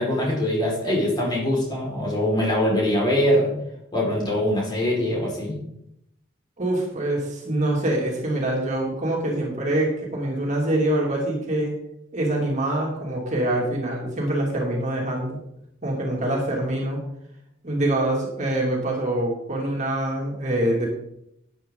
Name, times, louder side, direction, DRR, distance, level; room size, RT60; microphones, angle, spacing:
voice 1, 0.0-3.5 3.9-5.6, left 1 dB, 25° left, -4 dB, 4.7 m, -23 dB
voice 2, 6.6-11.8 12.1-15.4 15.8-17.0 17.6-20.9, right 1 dB, 40° right, -2 dB, 2.7 m, -25 dB
12.5 x 9.4 x 3.8 m, 0.79 s
head